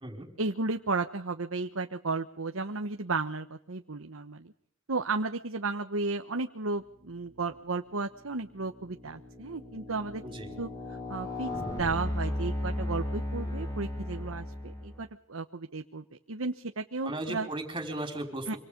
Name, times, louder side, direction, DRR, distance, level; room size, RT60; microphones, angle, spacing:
voice 1, 0.4-4.5 4.9-10.2 10.6-17.5 18.5-18.6, right 3 dB, 85° right, 7 dB, 1.1 m, -34 dB
sound 1, 7.3-7.6 8.2-15.0, left 1 dB, 20° left, 7.5 m, -36 dB
voice 2, 10.2-10.5 17.0-18.6, right 2 dB, 25° right, 5 dB, 5.2 m, -36 dB
26.0 x 26.0 x 5.3 m, 0.66 s
head